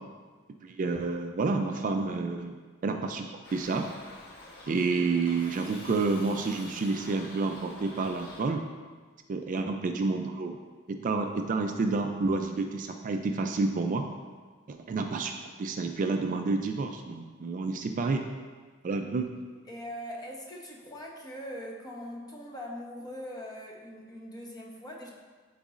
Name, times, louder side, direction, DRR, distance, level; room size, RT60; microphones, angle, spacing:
voice 1, 0.6-2.5 2.8-3.9 4.7-8.6 9.3-10.6 10.9-14.1 14.7-15.3 15.6-18.2 18.8-19.3, right 3 dB, 40° right, 5 dB, 0.3 m, -29 dB
Shout / Livestock farm animals working animals, 3.4-8.4, left 1 dB, 50° left, 1.4 m, -47 dB
voice 2, 19.7-25.1, equal, 20° left, -2 dB, 0.9 m, -41 dB
11.0 x 4.0 x 2.5 m, 1.4 s
head